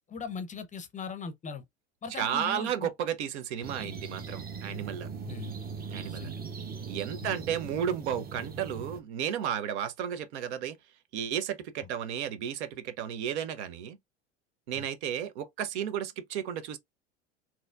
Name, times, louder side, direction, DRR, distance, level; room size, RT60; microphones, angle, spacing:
voice 1, 0.1-1.6 2.0-2.9 5.3-5.6 6.0-6.4 7.2-7.4 14.7-14.9, left 5 dB, 20° left, 0.6 m, -40 dB
voice 2, 2.1-5.1 5.9-6.3 6.9-10.8 11.1-14.0 14.7-16.8, right 9 dB, 65° right, 0.8 m, -33 dB
sound 1, 3.6-9.0, right 5 dB, 25° right, 0.8 m, -40 dB
4.0 x 2.8 x 2.4 m
hypercardioid pair, 75°, 36 cm